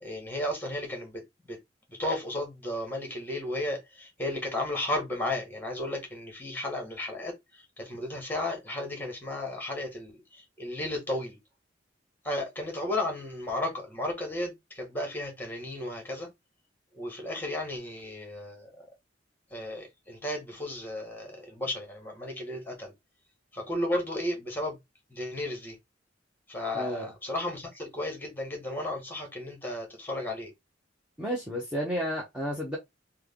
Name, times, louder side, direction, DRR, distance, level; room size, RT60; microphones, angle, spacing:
voice 1, 0.0-1.2 1.5-1.6 1.9-11.4 12.2-16.3 16.9-18.7 19.5-22.9 23.5-24.8 25.1-25.8 26.5-30.5, left 1 dB, 10° left, 1.3 m, -34 dB
voice 2, 26.7-27.1 31.2-32.8, equal, 5° right, 0.8 m, -32 dB
3.3 x 2.2 x 3.5 m
head